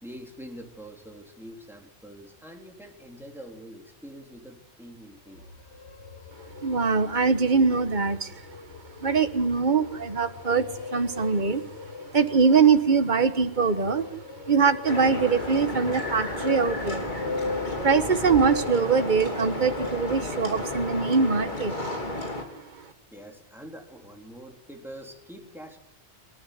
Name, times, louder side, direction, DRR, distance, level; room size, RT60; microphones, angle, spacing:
voice 1, 0.0-5.5 23.1-25.8, equal, ahead, 2 dB, 3.7 m, -44 dB
sound 1, 5.2-22.2, left 4 dB, 80° left, 1.8 m, -39 dB
voice 2, 6.6-8.4 9.0-11.6 12.0-14.1 14.5-21.8 22.2-22.8, right 5 dB, 45° right, 11 dB, 1.4 m, -23 dB
sound 2, 14.9-22.4, left 1 dB, 45° left, 3.4 m, -33 dB
27.5 x 12.5 x 9.4 m, 0.80 s
omnidirectional pair, 1.1 m